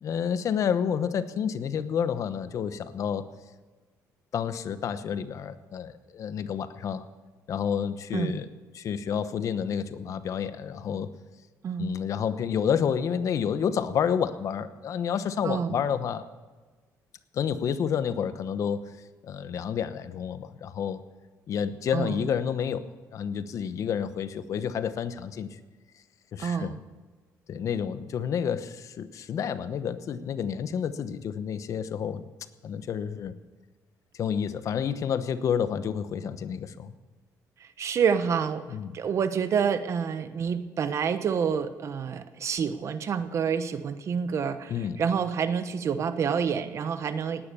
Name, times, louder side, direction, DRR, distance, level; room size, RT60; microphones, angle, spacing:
voice 1, 0.0-3.3 4.3-7.0 7.5-8.5 8.7-11.1 11.8-16.3 17.3-18.9 19.2-21.0 21.5-25.6 26.3-26.7 27.5-32.2 32.6-33.4 34.2-36.9 38.7-38.9 44.7-45.0, left 7 dB, 55° left, 12 dB, 0.9 m, -29 dB
voice 2, 15.4-15.8 21.9-22.3 26.4-26.8 37.6-38.6 38.9-47.5, right 7 dB, 50° right, 11 dB, 1.1 m, -28 dB
19.0 x 10.0 x 6.9 m, 1.3 s
cardioid pair, 115°, 6 cm